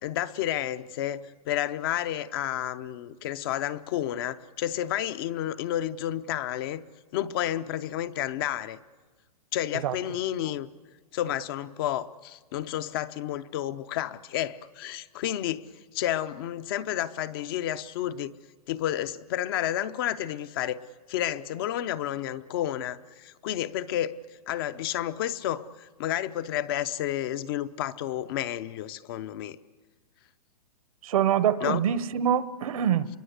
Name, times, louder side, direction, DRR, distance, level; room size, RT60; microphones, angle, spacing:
voice 1, 0.0-6.8 7.1-8.8 9.5-10.7 11.1-18.3 18.7-20.8 21.1-24.2 24.5-29.6 31.6-31.8, left 12 dB, 35° left, 14 dB, 0.7 m, -31 dB
voice 2, 31.0-33.1, right 9 dB, 60° right, 15 dB, 0.9 m, -25 dB
27.5 x 23.0 x 8.0 m, 1.3 s
hypercardioid pair, 160°, 20 cm